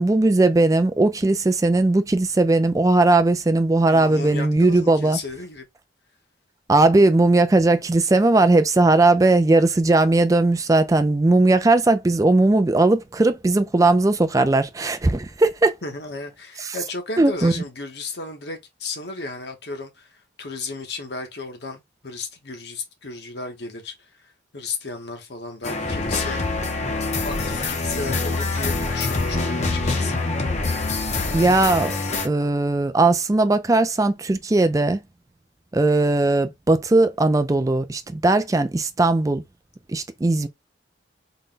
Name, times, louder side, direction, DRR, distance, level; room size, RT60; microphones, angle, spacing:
voice 1, 0.0-5.2 6.7-15.7 16.6-16.8 17.2-17.5 31.3-32.0 32.2-35.0 35.7-39.4 39.9-40.5, right 2 dB, 20° right, 0.3 m, -18 dB
voice 2, 3.9-5.7 15.8-26.4 27.2-30.3, left 3 dB, 60° left, 1.0 m, -34 dB
sound 1, 25.6-32.3, left 3 dB, 35° left, 0.7 m, -25 dB
3.9 x 2.2 x 3.7 m
head